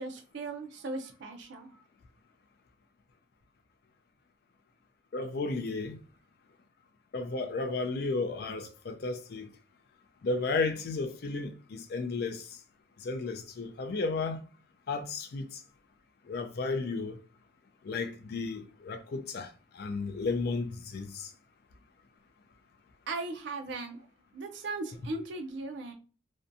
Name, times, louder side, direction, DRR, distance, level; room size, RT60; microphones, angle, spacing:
voice 1, 0.0-1.8 23.1-24.1 24.3-25.9, right 3 dB, 60° right, 0.5 m, -38 dB
voice 2, 5.1-6.0 7.1-9.5 10.2-12.4 13.0-14.4 14.9-15.5 16.3-17.2 17.8-19.5 19.7-20.7 20.9-21.3, left 3 dB, 50° left, 0.4 m, -33 dB
2.6 x 2.2 x 2.5 m
head